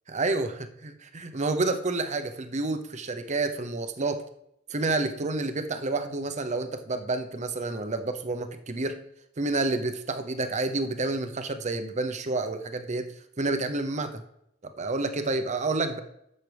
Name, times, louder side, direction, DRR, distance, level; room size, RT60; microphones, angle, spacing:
voice 1, 0.1-0.5 0.8-4.2 4.7-9.0 9.4-13.1 13.4-14.2 14.6-16.0, right 3 dB, 35° right, 8 dB, 0.7 m, -29 dB
10.5 x 7.4 x 3.4 m, 0.78 s
head